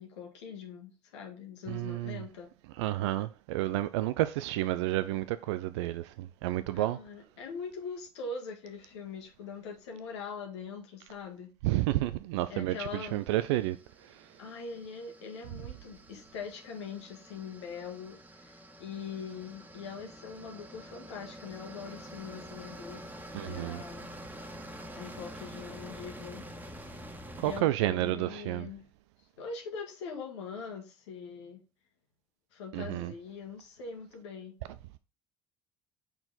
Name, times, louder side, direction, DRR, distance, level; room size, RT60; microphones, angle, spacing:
voice 1, 0.0-2.5 6.7-11.5 12.5-13.2 14.4-24.1 25.0-26.5 27.4-28.8 29.4-31.6 32.5-34.5, left 5 dB, 80° left, 1.7 m, -42 dB
voice 2, 1.7-2.2 2.8-7.0 11.6-13.8 23.3-23.8 27.4-28.7 32.7-33.1, right 15 dB, 75° right, 0.4 m, -30 dB
sound 1, 12.9-27.6, equal, 10° right, 1.6 m, -47 dB
5.8 x 4.5 x 3.7 m
hypercardioid pair, 65°, 15 cm